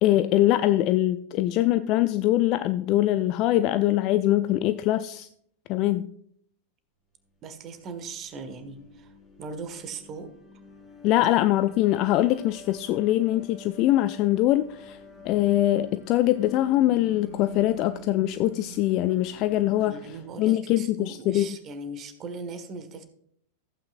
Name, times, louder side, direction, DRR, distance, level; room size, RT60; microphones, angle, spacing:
voice 1, 0.0-5.3 5.7-6.1 11.0-15.0 15.2-20.0 20.4-21.5, left 14 dB, 40° left, 12 dB, 0.4 m, -23 dB
voice 2, 7.4-10.3 19.8-23.1, right 3 dB, 30° right, 8 dB, 1.5 m, -39 dB
sound 1, 7.7-20.6, left 3 dB, 15° left, 4.0 m, -48 dB
15.0 x 8.7 x 2.5 m, 0.66 s
figure-of-eight pair, 90°, 0 cm